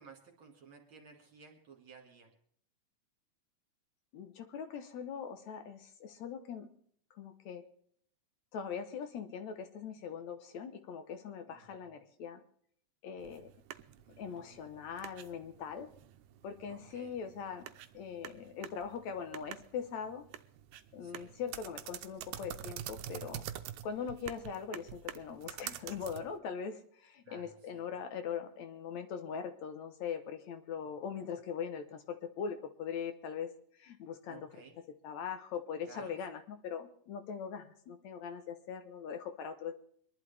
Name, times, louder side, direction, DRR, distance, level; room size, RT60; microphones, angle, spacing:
voice 1, 0.0-2.3 11.5-11.9 14.0-14.7 16.7-17.2 21.0-21.4 27.2-27.9 34.3-34.8 35.9-36.2, right 5 dB, 45° right, 2 dB, 2.7 m, -56 dB
voice 2, 4.1-6.7 7.1-7.6 8.5-12.4 13.0-13.5 14.2-15.9 16.4-17.7 17.9-20.3 20.9-23.4 23.8-33.5 33.8-34.5 35.0-39.7, left 7 dB, 70° left, 8 dB, 2.2 m, -41 dB
sound 1, 13.2-26.4, right 11 dB, 80° right, 2.1 m, -47 dB
24.0 x 11.5 x 3.4 m, 0.62 s
omnidirectional pair, 3.5 m